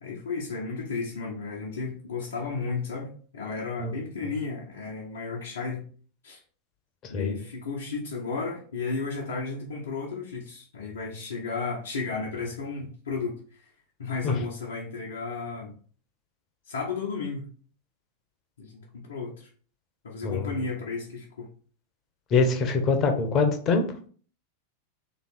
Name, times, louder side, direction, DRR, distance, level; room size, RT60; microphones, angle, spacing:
voice 1, 0.0-5.9 6.2-6.4 7.1-13.6 14.0-15.8 16.7-17.5 18.6-19.5 20.0-21.5, left 4 dB, 65° left, -4 dB, 0.9 m, -33 dB
voice 2, 7.0-7.4 14.2-14.4 20.2-20.7 22.3-23.9, left 4 dB, 30° left, 5 dB, 1.0 m, -24 dB
3.4 x 3.2 x 4.3 m, 0.43 s
figure-of-eight pair, 90°, 0 cm